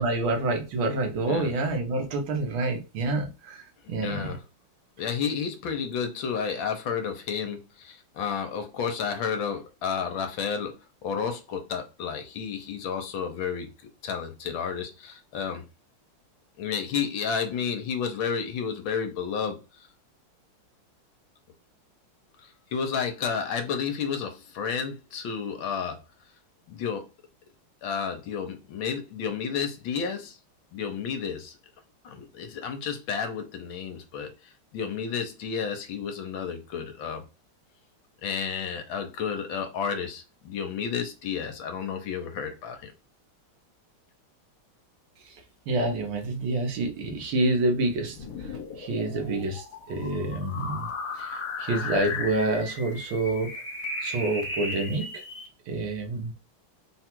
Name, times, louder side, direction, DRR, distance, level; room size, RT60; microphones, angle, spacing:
voice 1, 0.0-3.6 3.9-4.3 45.7-48.2 48.8-50.9 51.2-53.5 54.0-55.2 55.7-56.3, right 2 dB, 70° right, 1.6 m, -27 dB
voice 2, 4.0-4.4 5.0-13.7 14.0-15.6 16.6-19.6 22.4-26.0 26.7-27.1 27.8-30.4 30.7-31.6 32.0-34.3 34.7-37.2 38.2-42.9, left 6 dB, 70° left, 1.4 m, -31 dB
sound 1, 48.1-55.5, left 3 dB, 50° left, 1.7 m, -36 dB
3.9 x 2.3 x 4.4 m
omnidirectional pair, 2.4 m